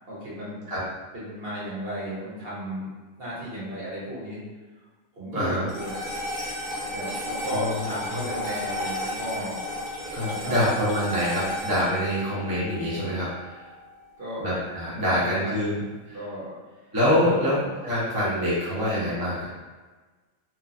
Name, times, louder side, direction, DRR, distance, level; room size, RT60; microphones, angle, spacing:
voice 1, 0.1-0.6 1.1-2.9 3.2-4.4 5.1-6.0 6.9-9.6 10.3-10.6 14.2-14.4 15.2-15.6 16.1-16.5 17.2-17.7, equal, 50° right, -9 dB, 1.1 m, -34 dB
voice 2, 5.3-5.7 7.4-8.3 10.1-13.6 14.4-15.8 16.1-16.2 16.9-19.5, equal, 25° right, -9 dB, 0.5 m, -25 dB
sound 1, 5.7-14.2, left 1 dB, 45° left, 0.7 m, -33 dB
3.0 x 2.1 x 2.4 m, 1.3 s
omnidirectional pair, 1.4 m